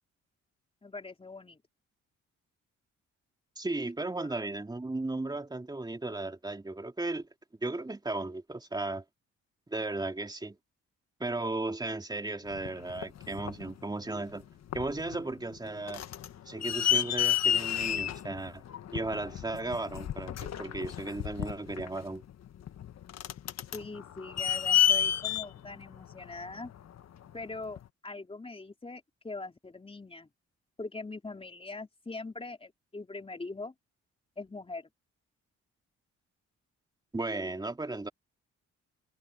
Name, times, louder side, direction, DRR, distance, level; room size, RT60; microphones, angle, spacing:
voice 1, 0.8-1.6 4.2-4.3 23.7-26.7 27.3-30.3 30.8-33.7 34.4-34.9, left 3 dB, 20° left, 3.5 m, -42 dB
voice 2, 3.6-7.3 7.6-9.0 9.7-10.6 11.2-14.4 14.7-16.0 16.5-18.6 18.9-22.2 37.1-38.1, right 2 dB, 15° right, 2.9 m, -35 dB
sound 1, 12.5-13.7 14.3-14.4 14.7-15.2 15.5-27.0 27.8-27.9, left 10 dB, 60° left, 1.5 m, -30 dB
cardioid pair, 90°, 30 cm